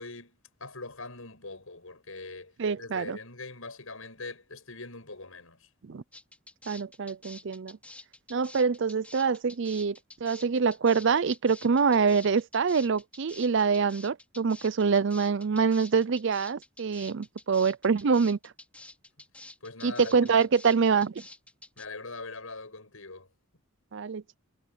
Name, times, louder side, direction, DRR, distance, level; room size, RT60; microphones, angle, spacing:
voice 1, 0.0-5.7 19.6-20.5 21.8-23.3, left 3 dB, 75° left, 6.6 m, -42 dB
voice 2, 2.6-3.2 5.8-6.0 6.7-7.8 8.3-18.5 19.8-21.2 23.9-24.4, right 5 dB, 60° right, 0.5 m, -25 dB
sound 1, 6.1-21.8, left 2 dB, 5° left, 3.2 m, -49 dB
head